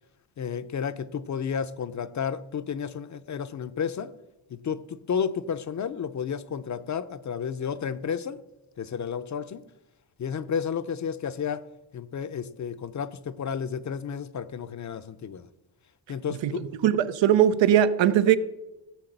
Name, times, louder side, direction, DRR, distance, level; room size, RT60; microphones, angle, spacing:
voice 1, 0.4-4.1 4.5-8.4 8.8-9.6 10.2-11.6 11.9-15.5 16.1-16.6, left 7 dB, 40° left, 0.6 m, -32 dB
voice 2, 16.4-18.4, right 10 dB, 90° right, 0.9 m, -20 dB
16.0 x 6.5 x 8.0 m
wide cardioid pair, 145°, 43 cm